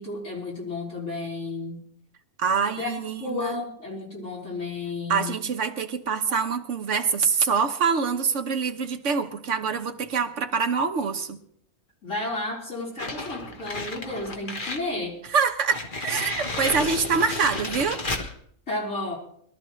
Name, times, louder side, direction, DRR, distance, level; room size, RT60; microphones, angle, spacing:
voice 1, 0.0-1.8 2.7-2.9 3.2-5.4 12.0-15.2 18.7-19.2, left 2 dB, 70° left, 4.8 m, -32 dB
voice 2, 2.4-3.6 5.1-11.4 15.3-18.0, right 5 dB, 65° right, 1.4 m, -25 dB
sound 1, 13.0-14.9 15.3-15.4 15.7-18.3, left 2 dB, 40° left, 1.5 m, -32 dB
22.0 x 13.0 x 3.2 m
omnidirectional pair, 1.3 m